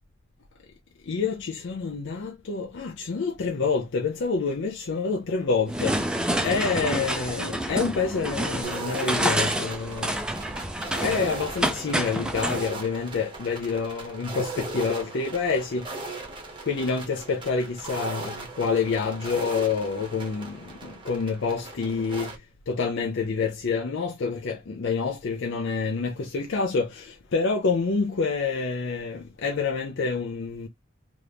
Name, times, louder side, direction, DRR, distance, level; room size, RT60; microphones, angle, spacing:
voice 1, 1.1-5.9 6.4-10.1 11.0-15.8 16.6-22.3 22.7-30.7, left 4 dB, 60° left, 0.5 m, -27 dB
sound 1, 5.7-12.7, right 1 dB, 5° right, 0.4 m, -28 dB
sound 2, 8.6-22.4, right 3 dB, 25° right, 0.8 m, -38 dB
2.9 x 2.5 x 3.3 m
head